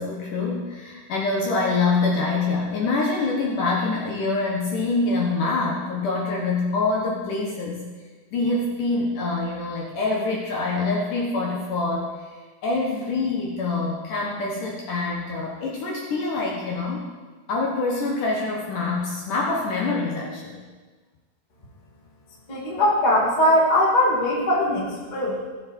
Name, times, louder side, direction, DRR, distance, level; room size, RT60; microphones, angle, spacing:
voice 1, 0.0-7.8 8.3-12.1 12.6-17.1 17.5-20.6, left 3 dB, 65° left, -2 dB, 2.3 m, -25 dB
voice 2, 22.5-25.3, left 1 dB, 15° left, -5 dB, 1.5 m, -20 dB
15.5 x 7.1 x 4.5 m, 1.4 s
omnidirectional pair, 4.6 m